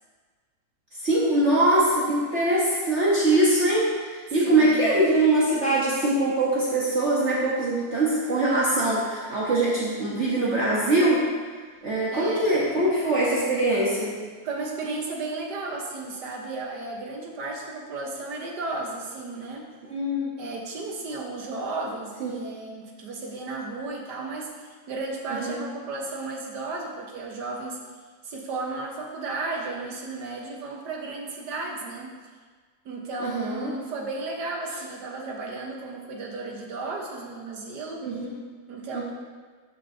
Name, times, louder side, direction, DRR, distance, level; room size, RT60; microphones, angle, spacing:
voice 1, 1.0-11.3 11.8-14.2 19.9-20.3 22.2-22.3 25.4-25.6 33.2-33.7 38.0-38.3 38.9-39.0, right 1 dB, 45° right, -6 dB, 1.3 m, -22 dB
voice 2, 4.4-5.0 12.1-12.5 14.4-19.6 20.4-27.8 28.2-32.1 32.8-38.1 38.7-39.0, right 3 dB, 80° right, 0 dB, 1.7 m, -34 dB
13.0 x 5.2 x 2.7 m, 1.5 s
omnidirectional pair, 1.8 m